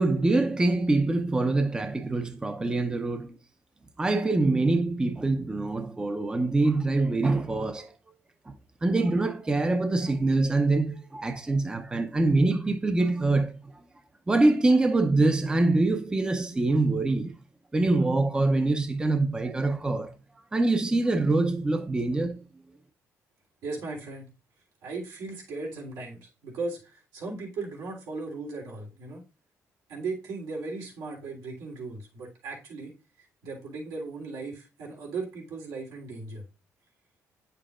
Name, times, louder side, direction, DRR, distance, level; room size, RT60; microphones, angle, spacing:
voice 1, 0.0-3.3 4.0-7.9 8.8-13.7 14.3-17.3 17.7-20.1 20.5-22.4, right 2 dB, 15° right, 0.6 m, -24 dB
voice 2, 23.6-24.3 24.8-29.2 29.9-32.9 33.2-36.4, right 3 dB, 90° right, 3.3 m, -37 dB
8.8 x 6.7 x 2.5 m
cardioid pair, 115°, 6 cm